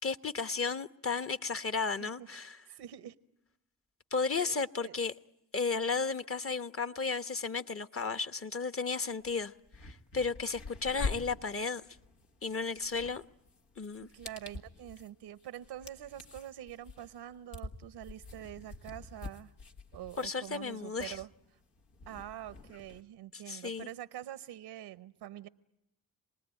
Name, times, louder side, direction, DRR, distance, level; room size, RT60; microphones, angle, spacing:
voice 1, 0.0-2.6 4.1-5.1 5.5-9.5 9.8-11.8 12.4-13.2 13.8-14.1 20.2-21.2 23.3-23.9, left 4 dB, 35° left, 1.1 m, -34 dB
voice 2, 1.8-2.3 2.7-3.1 4.3-4.9 14.1-19.5 19.9-21.3 22.1-25.5, right 12 dB, 85° right, 0.9 m, -45 dB
sound 1, 9.2-9.3 9.6-23.0, left 3 dB, 85° left, 1.7 m, -45 dB
27.5 x 20.0 x 9.1 m
supercardioid pair, 40°, 39 cm